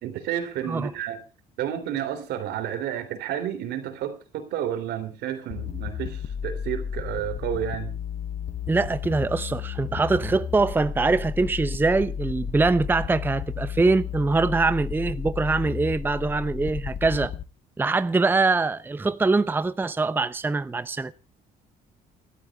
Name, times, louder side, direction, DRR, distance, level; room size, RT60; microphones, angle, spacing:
voice 1, 0.0-1.2 1.6-7.9, right 10 dB, 80° right, 3.0 m, -31 dB
sound 1, 5.5-17.4, left 8 dB, 45° left, 0.8 m, -33 dB
voice 2, 8.7-17.3 17.8-21.1, right 3 dB, 10° right, 0.6 m, -23 dB
29.0 x 12.5 x 2.3 m
cardioid pair, 110°, 17 cm